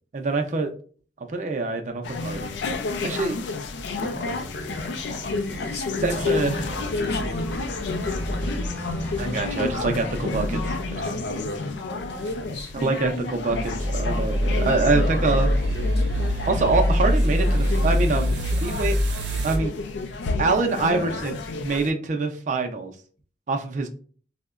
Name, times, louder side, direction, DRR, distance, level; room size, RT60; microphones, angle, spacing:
voice 1, 0.1-0.7 1.3-2.6 3.0-3.4 6.0-6.6 9.2-11.0 12.7-15.5 16.4-19.0 19.4-19.7 20.4-22.9 23.5-23.9, right 3 dB, 45° right, 0.4 m, -25 dB
sound 1, 2.0-21.9, left 3 dB, 85° left, 0.4 m, -31 dB
voice 2, 4.0-8.8 10.9-12.7 14.7-16.3 20.7-21.3, left 1 dB, 65° left, 0.7 m, -36 dB
sound 2, 5.9-11.0, equal, 10° left, 0.5 m, -33 dB
sound 3, 13.5-19.6, equal, 85° right, 0.6 m, -23 dB
3.6 x 2.1 x 2.3 m
head